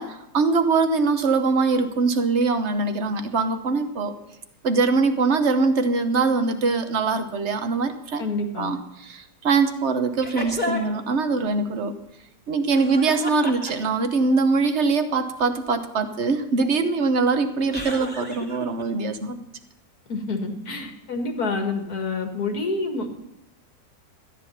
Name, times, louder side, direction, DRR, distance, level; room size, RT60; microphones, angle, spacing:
voice 1, 0.0-4.1 4.6-8.2 8.6-12.0 12.5-19.4, right 4 dB, 45° right, 8 dB, 1.1 m, -22 dB
voice 2, 8.2-8.7 20.1-23.1, left 3 dB, 60° left, 4 dB, 2.2 m, -28 dB
sound 1, 10.2-11.0 12.7-14.1 17.7-18.8, left 1 dB, 5° left, 2.3 m, -32 dB
13.5 x 10.0 x 5.7 m, 0.83 s
omnidirectional pair, 1.9 m